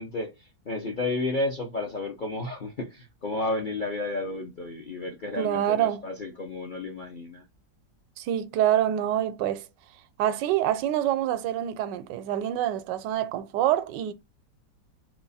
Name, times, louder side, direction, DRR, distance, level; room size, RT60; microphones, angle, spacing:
voice 1, 0.0-7.5, left 2 dB, 50° left, 0.6 m, -32 dB
voice 2, 5.4-6.1 8.2-9.7 10.2-14.1, right 11 dB, 85° right, 1.2 m, -26 dB
3.5 x 3.3 x 4.0 m
omnidirectional pair, 1.9 m